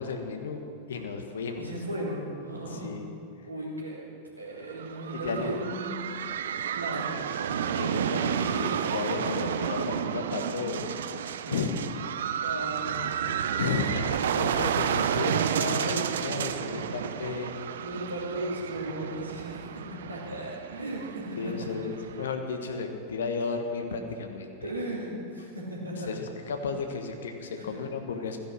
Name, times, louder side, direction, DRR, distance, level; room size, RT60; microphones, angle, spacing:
voice 1, 0.0-1.8 2.6-3.1 3.4-3.5 5.1-5.6 7.1-7.2 7.5-11.0 11.5-11.8 13.6-17.5 21.3-24.7 26.0-28.4, left 5 dB, 65° left, 5 dB, 1.4 m, -33 dB
voice 2, 1.6-3.1 3.4-4.1 4.4-6.0 6.7-7.1 11.4-11.7 12.4-13.4 17.8-21.5 24.6-26.1 27.6-27.7, right 1 dB, 85° right, -4 dB, 3.2 m, -36 dB
sound 1, 4.7-22.3, right 8 dB, 60° right, 0.5 m, -31 dB
15.5 x 10.5 x 6.3 m, 2.7 s
figure-of-eight pair, 90°, 0 cm